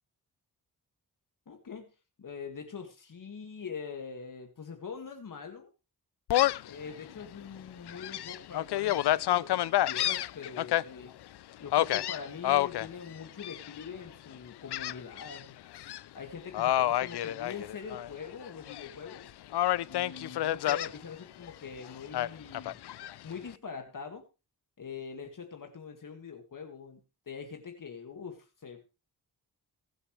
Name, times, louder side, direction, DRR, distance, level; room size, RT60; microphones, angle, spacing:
voice 1, 1.5-1.9 2.2-5.7 6.6-11.1 11.6-15.6 16.1-19.3 19.8-22.8 23.2-24.3 24.8-27.0 27.3-28.8, left 6 dB, 55° left, 4 dB, 2.1 m, -43 dB
Gull seagull, 6.3-6.7 7.2-7.3 7.9-10.8 11.7-12.9 13.4-13.9 14.7-15.4 15.7-16.0 16.5-18.1 18.4-19.2 19.5-20.9 22.1-23.1, left 13 dB, 85° left, 0.5 m, -28 dB
22.0 x 7.8 x 3.3 m, 0.30 s
wide cardioid pair, 110°, 39 cm